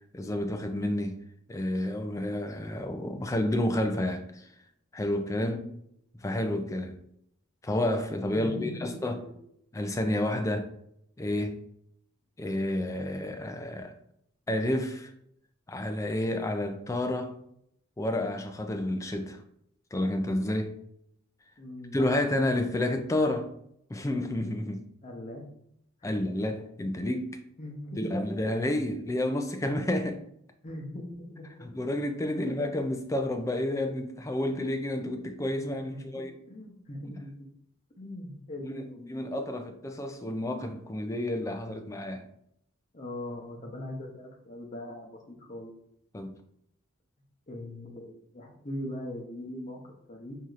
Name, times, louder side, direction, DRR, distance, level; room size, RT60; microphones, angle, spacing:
voice 1, 0.1-1.2 1.5-4.5 4.9-5.6 6.2-7.0 7.6-9.2 9.7-10.7 11.2-11.6 12.4-13.9 14.5-15.1 15.7-17.4 18.0-19.4 19.9-20.7 21.9-23.5 23.9-24.8 26.0-27.4 28.0-30.2 31.6-36.3 37.1-37.2 38.6-38.8 39.1-42.3 46.1-46.3, left 1 dB, 15° left, 0.3 m, -30 dB
voice 2, 5.4-5.8 8.3-9.0 21.6-22.0 25.0-25.5 26.0-26.1 27.6-28.4 30.6-31.7 32.3-32.6 35.8-36.0 36.5-37.5 38.0-39.6 42.9-45.7 47.5-50.4, left 1 dB, 35° left, 0.7 m, -41 dB
4.7 x 2.8 x 2.4 m
head